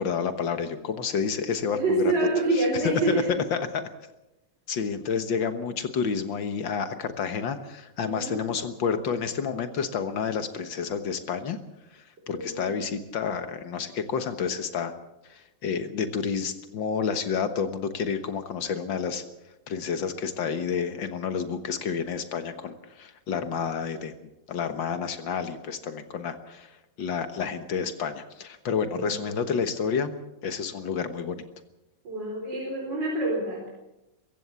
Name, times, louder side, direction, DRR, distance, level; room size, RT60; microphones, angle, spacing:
voice 1, 0.0-2.1 2.5-3.9 4.7-11.6 11.9-14.9 15.3-19.2 19.7-26.7 27.0-30.1 30.4-31.4, left 6 dB, 80° left, 9 dB, 2.0 m, -29 dB
voice 2, 1.7-3.3 8.0-8.4 12.3-12.8 28.9-29.3 32.0-33.7, right 2 dB, 65° right, -1 dB, 4.9 m, -27 dB
23.5 x 15.5 x 7.0 m, 0.94 s
omnidirectional pair, 2.1 m